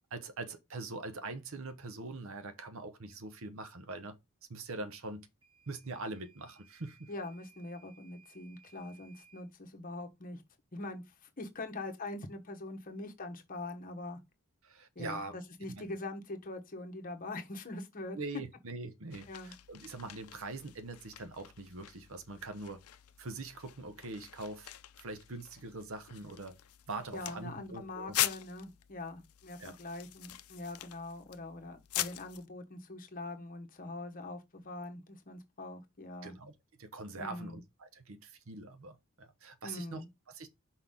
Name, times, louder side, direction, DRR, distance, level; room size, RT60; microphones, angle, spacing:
voice 1, 0.0-4.2 4.5-5.3 5.7-7.1 14.6-15.9 18.1-22.8 23.2-24.7 25.0-26.6 26.9-28.2 29.6-29.8 36.2-36.5 36.8-40.5, right 3 dB, 65° right, 0.8 m, -43 dB
Microwave oven / Alarm, 5.4-9.5, right 7 dB, 20° right, 1.3 m, -63 dB
voice 2, 7.1-10.4 10.7-14.2 14.9-18.2 19.3-19.5 27.1-36.3 37.2-37.6 39.6-40.1, left 2 dB, 40° left, 1.1 m, -43 dB
sound 1, 19.1-32.5, left 14 dB, 80° left, 0.5 m, -42 dB
6.0 x 4.2 x 3.7 m
head